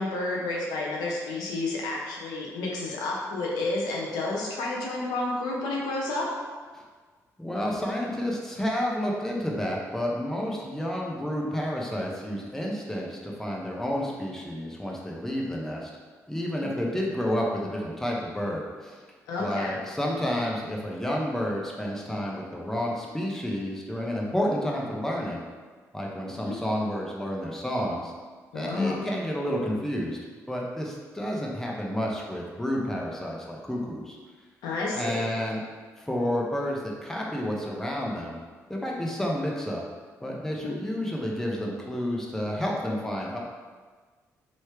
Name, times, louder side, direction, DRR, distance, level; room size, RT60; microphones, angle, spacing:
voice 1, 0.0-6.3 19.3-19.7 26.5-26.6 28.5-29.1 34.6-35.2 40.6-40.7, left 2 dB, 90° left, -3 dB, 0.8 m, -30 dB
voice 2, 7.4-15.9 16.3-19.0 19.4-25.4 25.9-28.1 28.5-30.2 30.5-34.2 34.9-35.6 36.0-38.4 38.7-39.8 40.2-43.4, equal, 5° left, -3 dB, 0.9 m, -30 dB
3.2 x 3.1 x 4.4 m, 1.5 s
supercardioid pair, 65°, 7 cm